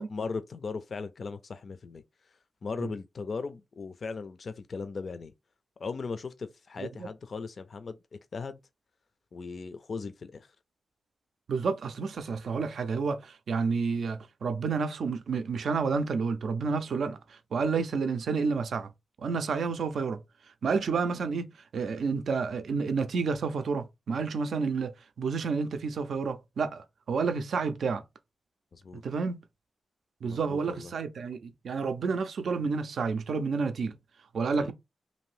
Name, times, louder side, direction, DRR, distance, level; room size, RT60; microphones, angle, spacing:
voice 1, 0.0-2.0 2.6-5.3 5.8-8.6 9.3-10.5 28.7-29.0 30.2-30.9 34.6-34.7, left 4 dB, 60° left, 0.3 m, -38 dB
voice 2, 6.8-7.1 11.5-18.9 19.2-20.2 20.6-24.9 25.2-28.0 28.9-29.4 30.2-33.9 34.3-34.7, right 5 dB, 75° right, 0.4 m, -30 dB
2.6 x 2.6 x 3.2 m
cardioid pair, 65°, 0 cm